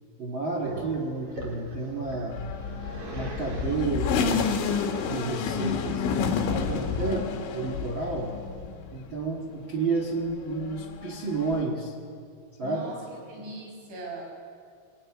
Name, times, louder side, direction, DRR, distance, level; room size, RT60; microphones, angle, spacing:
voice 1, 0.2-2.6 3.1-4.4 5.0-6.1 6.5-7.2 7.5-8.4 8.9-11.9 12.6-12.8, right 3 dB, 80° right, 0 dB, 1.1 m, -31 dB
Growling, 0.6-6.5, right 1 dB, 30° right, 3.8 m, -41 dB
sound 1, 2.3-9.2 9.6-11.6, left 6 dB, 70° left, 4.1 m, -30 dB
voice 2, 7.0-7.4 12.6-14.2, right 2 dB, 65° right, 0 dB, 8.1 m, -40 dB
21.5 x 20.5 x 9.7 m, 2.2 s
omnidirectional pair, 5.8 m